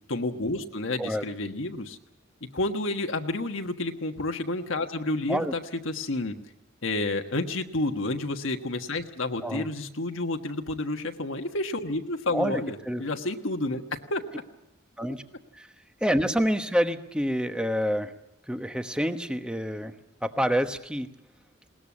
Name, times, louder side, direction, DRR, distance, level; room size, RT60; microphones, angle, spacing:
voice 1, 0.1-2.0 2.5-6.3 6.8-14.4, left 2 dB, 65° left, 5 dB, 1.4 m, -30 dB
voice 2, 12.3-13.0 15.0-15.2 15.6-15.7 16.0-18.1 18.5-19.9 20.2-21.1, equal, 5° right, 8 dB, 1.1 m, -27 dB
21.0 x 19.0 x 8.5 m, 0.83 s
head